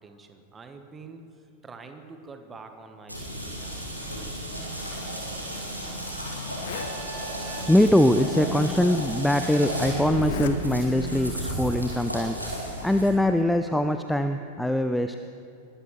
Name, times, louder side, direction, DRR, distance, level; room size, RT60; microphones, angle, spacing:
voice 1, 0.0-3.9, right 4 dB, 15° right, 7 dB, 1.2 m, -46 dB
sound 1, 3.1-13.1, right 1 dB, 85° right, 2.5 m, -33 dB
Zipper (clothing), 5.4-5.6 6.1-6.2 6.4-7.0 7.9-8.0 8.9-9.0 10.1-10.6 10.9-11.3, left 9 dB, 55° left, 0.9 m, -37 dB
Trumpet, 6.7-9.7, right 9 dB, 45° right, 0.7 m, -46 dB
voice 2, 7.4-15.2, left 1 dB, 5° left, 8 dB, 0.4 m, -23 dB
21.0 x 12.5 x 3.2 m, 2.5 s
figure-of-eight pair, 90°, 0 cm